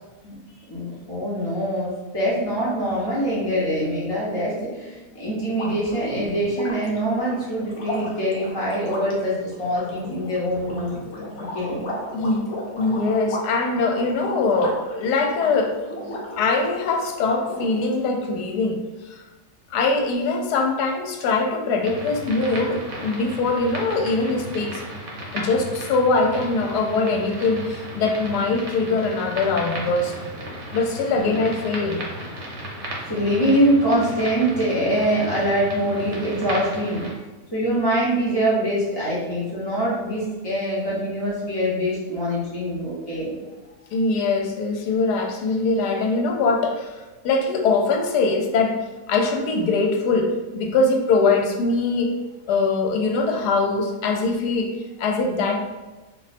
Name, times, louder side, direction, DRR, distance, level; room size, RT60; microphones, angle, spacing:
voice 1, 0.7-11.0 11.5-11.8 31.1-31.3 33.1-37.1 37.5-43.3, equal, 25° left, -8 dB, 0.5 m, -24 dB
sound 1, 5.4-17.0 17.4-18.2, left 1 dB, 60° left, 0.8 m, -35 dB
voice 2, 12.8-15.8 16.4-19.2 19.7-24.8 25.3-30.1 30.7-32.0 43.9-48.8 49.1-52.1 52.5-55.6, left 3 dB, 80° left, 2 dB, 1.1 m, -22 dB
sound 2, 21.8-37.1, right 1 dB, 60° right, 0.9 m, -35 dB
2.6 x 2.2 x 4.0 m, 1.2 s
omnidirectional pair, 1.7 m